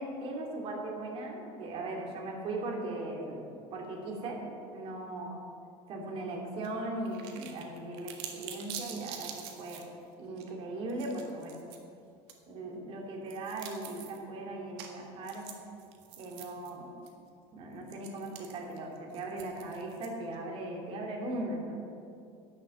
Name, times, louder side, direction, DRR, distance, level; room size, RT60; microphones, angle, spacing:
voice 1, 0.0-3.4 3.7-4.4 4.7-5.4 5.9-9.9 10.2-11.6 12.5-15.5 16.2-16.9 17.5-21.8, right 2 dB, 45° right, 0 dB, 2.5 m, -38 dB
sound 1, 6.6-6.7 7.1-9.8 10.4-10.5 10.9-11.8 12.3-12.4 13.3-14.2 14.8-14.9 15.2-16.7 17.1-17.2 17.9-20.4, right 9 dB, 80° right, 1.6 m, -45 dB
11.0 x 7.4 x 7.4 m, 2.5 s
cardioid pair, 145°, 14 cm